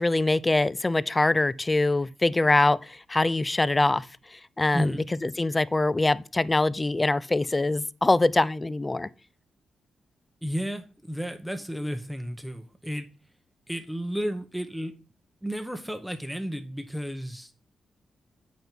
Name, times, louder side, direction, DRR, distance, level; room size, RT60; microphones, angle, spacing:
voice 1, 0.0-4.9 5.2-9.1, left 2 dB, 25° left, 0.4 m, -24 dB
voice 2, 4.7-5.0 10.4-13.1 13.7-14.9 15.4-17.5, equal, ahead, 1.0 m, -32 dB
7.9 x 5.2 x 4.6 m
cardioid pair, 65°, 0 cm